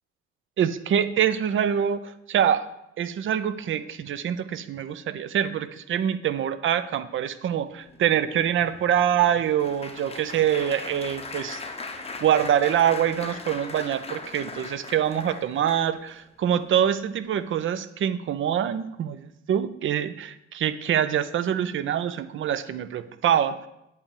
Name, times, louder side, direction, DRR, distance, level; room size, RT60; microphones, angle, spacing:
voice 1, 0.6-2.7 3.0-11.6 12.2-19.2 19.5-23.7, right 9 dB, 35° right, 13 dB, 0.5 m, -25 dB
Applause, 7.9-16.2 16.8-17.1 17.3-17.5, left 3 dB, 15° left, 0.8 m, -39 dB
8.4 x 3.4 x 4.6 m, 0.84 s
figure-of-eight pair, 50°, 35 cm